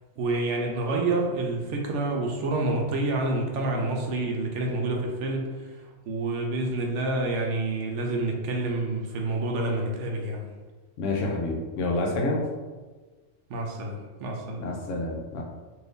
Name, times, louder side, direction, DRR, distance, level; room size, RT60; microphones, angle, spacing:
voice 1, 0.2-5.5 6.1-10.4 13.5-14.6, right 2 dB, 70° right, 1 dB, 0.8 m, -28 dB
voice 2, 11.0-12.4 14.6-15.4, left 2 dB, 75° left, 0 dB, 0.9 m, -28 dB
2.6 x 2.6 x 3.4 m, 1.3 s
omnidirectional pair, 1.3 m